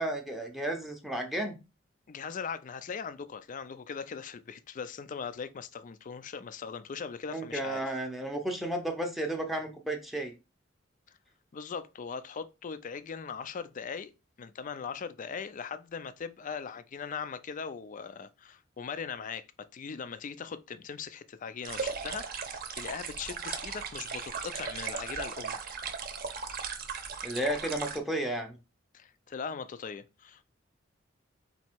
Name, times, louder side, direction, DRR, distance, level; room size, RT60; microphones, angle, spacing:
voice 1, 0.0-1.6 7.3-10.3 27.2-28.6, right 1 dB, ahead, 0.6 m, -33 dB
voice 2, 2.1-7.9 11.5-14.1 14.4-19.5 19.7-25.6 28.9-30.4, left 6 dB, 40° left, 0.4 m, -40 dB
sound 1, 21.6-28.0, right 6 dB, 50° right, 0.7 m, -37 dB
4.1 x 2.8 x 4.4 m
head